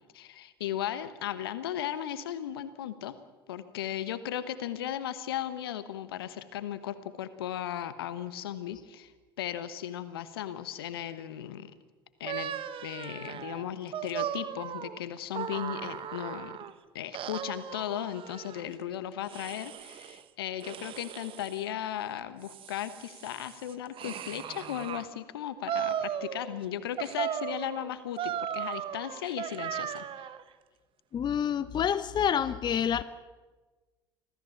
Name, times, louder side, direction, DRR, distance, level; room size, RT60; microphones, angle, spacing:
voice 1, 0.1-3.2 3.5-9.1 9.4-11.7 12.2-12.5 12.8-16.6 16.9-30.0, left 11 dB, 75° left, 13 dB, 1.3 m, -36 dB
sound 1, 12.2-16.7 17.1-18.7 19.3-20.2 20.6-21.6 22.2-25.1 25.7-26.6 27.0-30.4, right 9 dB, 45° right, 1.3 m, -37 dB
voice 2, 31.1-33.0, left 8 dB, 35° left, 14 dB, 0.9 m, -27 dB
26.5 x 16.5 x 7.2 m, 1.3 s
figure-of-eight pair, 65°, 13 cm